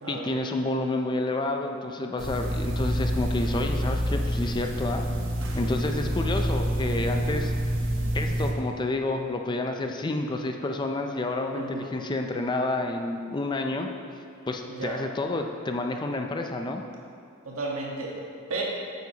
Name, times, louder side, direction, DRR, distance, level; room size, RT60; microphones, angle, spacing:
voice 1, 0.1-5.0 5.5-7.5 8.1-13.9 14.5-16.8, left 2 dB, 20° left, 4 dB, 0.4 m, -29 dB
sound 1, 2.2-8.5, equal, 60° right, 1.0 m, -27 dB
voice 2, 11.5-11.9 14.7-15.1 17.4-18.2 18.5-18.6, right 3 dB, 85° right, -2 dB, 1.5 m, -33 dB
9.4 x 7.9 x 2.9 m, 2.4 s
head